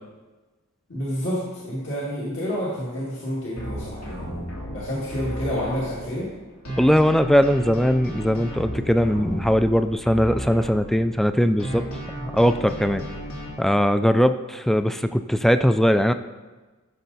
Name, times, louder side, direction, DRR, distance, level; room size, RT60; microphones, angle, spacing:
voice 1, 0.9-6.3, equal, 55° left, -7 dB, 2.2 m, -29 dB
sound 1, 3.6-6.3 6.6-11.3 11.6-13.4, equal, 80° left, 2.9 m, -34 dB
voice 2, 6.8-11.8 12.2-13.0 13.6-16.1, equal, ahead, 10 dB, 0.3 m, -20 dB
14.5 x 6.5 x 4.1 m, 1.2 s
head